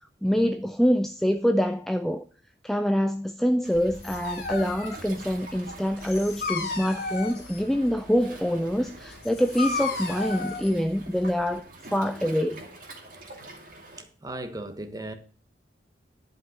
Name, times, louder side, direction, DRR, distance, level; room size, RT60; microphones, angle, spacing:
voice 1, 0.2-2.2 2.6-11.6 11.9-12.6, equal, ahead, 0.3 m, -25 dB
Waves surf, 3.6-14.0, right 2 dB, 45° right, 2.3 m, -46 dB
Dog, 3.7-11.6, left 4 dB, 55° left, 2.7 m, -35 dB
voice 2, 14.2-15.1, right 1 dB, 20° right, 1.2 m, -36 dB
11.0 x 5.3 x 5.9 m
head